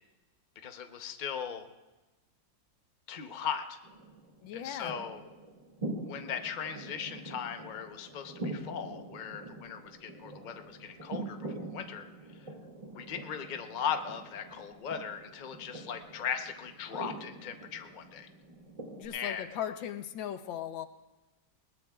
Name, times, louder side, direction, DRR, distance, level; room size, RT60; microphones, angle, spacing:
voice 1, 0.6-1.7 3.1-3.8 4.5-5.2 5.9-12.0 12.3-12.5 12.9-18.3 19.1-19.5, left 7 dB, 40° left, 5 dB, 0.7 m, -38 dB
sound 1, 3.8-19.1, right 2 dB, 20° right, 2.2 m, -44 dB
voice 2, 4.4-5.1 18.9-20.9, left 10 dB, 85° left, 9 dB, 1.6 m, -38 dB
20.5 x 19.5 x 2.4 m, 1.1 s
omnidirectional pair, 2.0 m